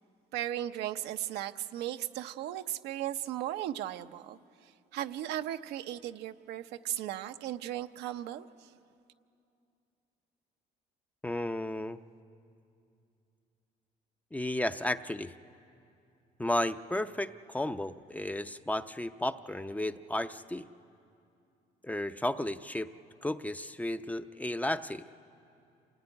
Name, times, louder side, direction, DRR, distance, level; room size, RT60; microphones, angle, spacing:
voice 1, 0.3-8.7, right 12 dB, 85° right, 8 dB, 0.8 m, -37 dB
voice 2, 11.2-12.0 14.3-15.3 16.4-20.7 21.8-22.9 23.2-25.0, left 1 dB, 10° left, 10 dB, 0.6 m, -33 dB
26.5 x 17.5 x 9.8 m, 2.6 s
cardioid pair, 110°, 17 cm